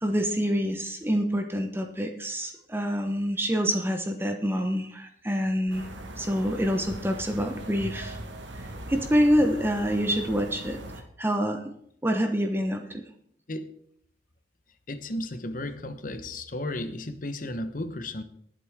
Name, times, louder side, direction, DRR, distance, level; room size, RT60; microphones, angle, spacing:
voice 1, 0.0-5.9 6.2-8.2 8.9-10.8 11.2-11.6 12.0-13.0, equal, 15° right, 5 dB, 1.0 m, -26 dB
sound 1, 5.7-11.0, right 1 dB, 90° right, 1.6 m, -40 dB
voice 2, 14.9-18.2, left 1 dB, 45° left, 9 dB, 1.1 m, -34 dB
20.0 x 7.8 x 3.7 m, 0.69 s
head